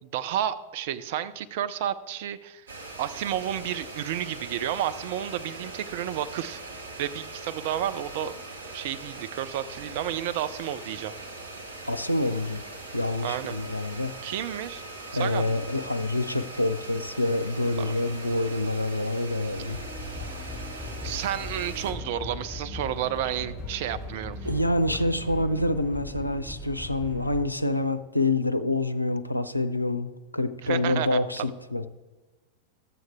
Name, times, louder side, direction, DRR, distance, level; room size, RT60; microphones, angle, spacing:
voice 1, 0.0-2.7 3.0-6.6 7.0-8.3 8.7-11.1 13.2-13.5 14.2-14.8 15.1-15.5 17.8-18.0 21.0-24.4 30.6-31.5, right 11 dB, 50° right, 11 dB, 0.5 m, -31 dB
sound 1, 2.7-21.9, right 2 dB, 70° right, 1.3 m, -41 dB
voice 2, 11.9-12.6 12.9-14.1 15.1-19.8 24.4-31.9, left 2 dB, 85° left, 9 dB, 0.5 m, -27 dB
sound 2, 19.5-27.4, left 1 dB, 20° right, 2.7 m, -38 dB
12.0 x 7.7 x 3.5 m, 1.2 s
figure-of-eight pair, 90°, 0 cm